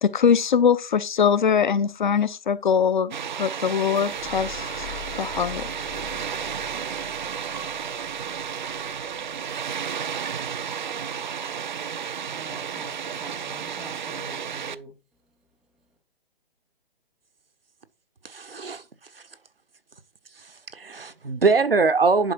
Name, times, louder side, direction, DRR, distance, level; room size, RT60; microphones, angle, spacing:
voice 1, 0.0-3.1 3.4-4.6 5.2-5.7, left 7 dB, 55° left, 1.0 m, -22 dB
Water, 3.1-14.8, right 7 dB, 55° right, 0.7 m, -32 dB
sound 1, 4.0-11.9, left 6 dB, 70° left, 2.2 m, -44 dB
voice 2, 12.3-15.0, right 1 dB, ahead, 0.4 m, -44 dB
voice 3, 18.2-18.8 19.1-19.2 20.4-22.3, right 4 dB, 80° right, 1.4 m, -23 dB
11.0 x 4.8 x 4.6 m
figure-of-eight pair, 140°, 29 cm